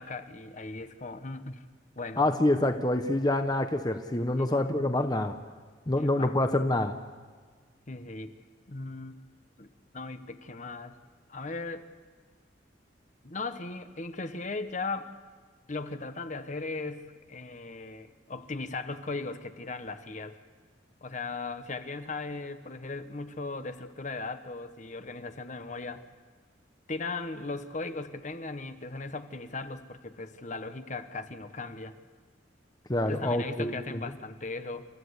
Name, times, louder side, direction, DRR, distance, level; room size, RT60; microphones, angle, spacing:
voice 1, 0.0-1.6 2.0-2.2 4.4-4.9 5.9-6.3 7.9-8.3 8.7-9.2 9.6-9.7 9.9-10.9 11.3-11.9 13.2-15.1 15.7-20.3 21.0-26.0 26.9-31.9 33.1-34.9, left 3 dB, 45° left, 10 dB, 1.1 m, -38 dB
voice 2, 2.2-5.3 5.9-6.9 32.9-34.0, left 1 dB, 20° left, 7 dB, 0.9 m, -26 dB
29.0 x 14.5 x 8.1 m, 1.5 s
head